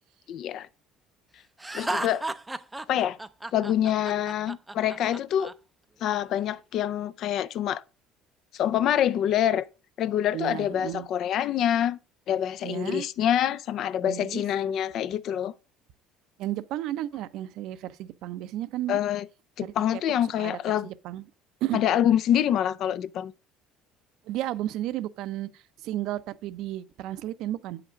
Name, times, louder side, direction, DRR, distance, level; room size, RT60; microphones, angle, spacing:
voice 1, 0.3-0.7 1.7-2.2 2.9-3.2 3.5-5.5 6.0-7.8 8.5-9.7 10.0-12.0 12.3-15.5 18.9-19.3 19.6-20.9 21.7-23.3, left 10 dB, 55° left, 0.5 m, -26 dB
Laughter, 1.6-5.5, right 2 dB, 10° right, 0.5 m, -34 dB
voice 2, 10.3-11.1 12.6-13.1 14.0-14.4 16.4-19.0 19.6-19.7 20.4-21.2 21.6-21.8 24.3-25.5 25.8-27.8, right 14 dB, 65° right, 0.6 m, -33 dB
8.3 x 5.9 x 5.1 m
cardioid pair, 130°, 0 cm